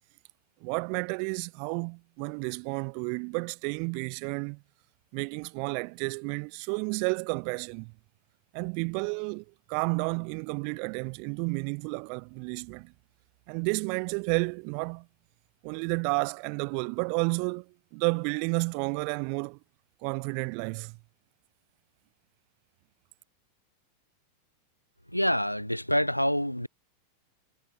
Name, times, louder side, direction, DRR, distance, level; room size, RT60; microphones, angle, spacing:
voice 1, 0.6-4.6 5.1-7.9 8.5-12.9 13.5-15.1 15.6-19.6 20.0-21.0, right 40 dB or more, 45° right, 0.6 m, -31 dB
voice 2, 25.1-26.7, equal, 90° left, 1.5 m, -26 dB
figure-of-eight pair, 90°, 0 cm